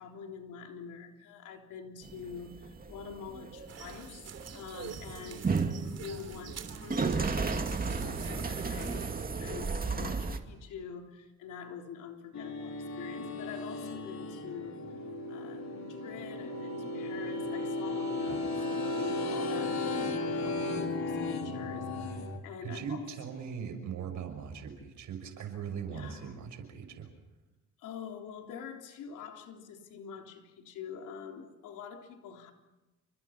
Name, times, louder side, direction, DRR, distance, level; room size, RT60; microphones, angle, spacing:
voice 1, 0.0-7.4 8.0-9.1 9.4-14.8 15.3-19.8 20.4-23.0 25.9-26.4 27.8-32.5, left 7 dB, 85° left, 2 dB, 3.8 m, -45 dB
sound 1, 2.0-10.4, right 4 dB, 30° right, 2.3 m, -34 dB
sound 2, 3.7-9.3, right 7 dB, 55° right, 3.3 m, -46 dB
sound 3, 12.3-22.4, left 2 dB, 65° left, 4.5 m, -35 dB
voice 2, 22.6-27.1, right 7 dB, 75° right, 6 dB, 6.1 m, -40 dB
29.0 x 25.5 x 6.0 m, 1.1 s
cardioid pair, 90°, 30 cm